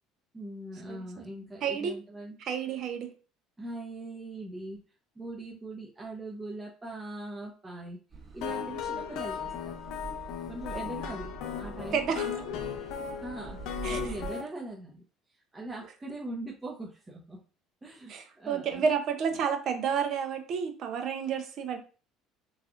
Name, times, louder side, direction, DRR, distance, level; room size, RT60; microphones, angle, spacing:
voice 1, 0.3-2.4 3.6-4.8 5.1-8.0 8.3-9.7 10.5-12.7 13.2-13.6 13.9-17.4 17.8-18.8, right 2 dB, 20° right, -3 dB, 0.7 m, -41 dB
voice 2, 0.9-1.3 1.6-1.9 2.4-3.1 10.7-10.8 11.9-12.3 13.8-14.1 18.1-21.8, right 6 dB, 55° right, 7 dB, 0.6 m, -30 dB
Car passing by / Accelerating revving vroom, 8.1-14.3, right 4 dB, 40° right, 1.4 m, -45 dB
sound 1, 8.4-14.4, left 8 dB, 65° left, 0.5 m, -36 dB
3.2 x 2.5 x 2.4 m, 0.37 s
hypercardioid pair, 70°, 0 cm